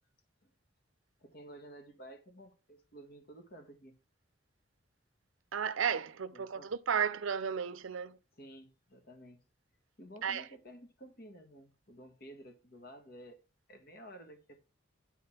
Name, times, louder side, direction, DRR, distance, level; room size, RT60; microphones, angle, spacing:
voice 1, 1.2-3.9 6.3-6.7 8.4-9.4 10.0-13.4 13.7-14.6, right 1 dB, 50° left, 1.7 m, -52 dB
voice 2, 5.5-8.2 10.2-10.5, right 7 dB, 80° right, 0.5 m, -33 dB
9.8 x 4.1 x 5.7 m
head